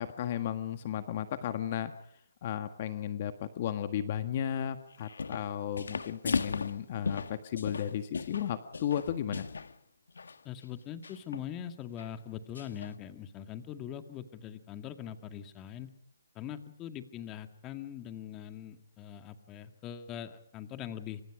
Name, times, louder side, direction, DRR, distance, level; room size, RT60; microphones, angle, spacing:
voice 1, 0.0-1.9 2.4-9.5, left 10 dB, 40° left, 9 dB, 1.6 m, -34 dB
sound 1, 4.9-5.5 5.8-9.7 10.1-10.4 11.0-11.5 12.0-12.1 12.5-12.9, left 5 dB, 80° left, 1.8 m, -36 dB
voice 2, 10.4-15.9 16.3-21.2, left 10 dB, 20° left, 8 dB, 2.1 m, -42 dB
27.5 x 26.0 x 5.0 m, 0.66 s
hypercardioid pair, 155°, 0 cm